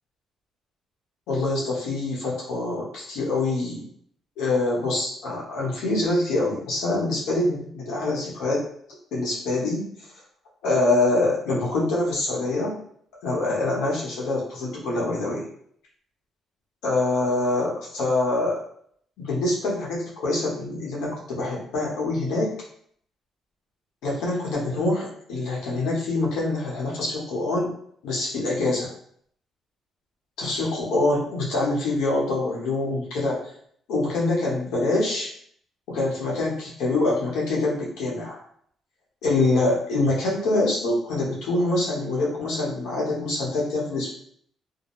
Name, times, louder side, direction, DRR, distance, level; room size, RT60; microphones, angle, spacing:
voice 1, 1.3-3.9 4.4-8.7 9.1-9.9 10.6-12.8 13.2-15.5 16.8-18.6 19.2-22.6 24.0-27.7 28.0-28.9 30.4-33.4 33.9-35.3 35.9-38.4 39.2-44.1, left 2 dB, 90° left, -4 dB, 1.1 m, -25 dB
2.7 x 2.1 x 3.0 m, 0.63 s
cardioid pair, 90°, 0 cm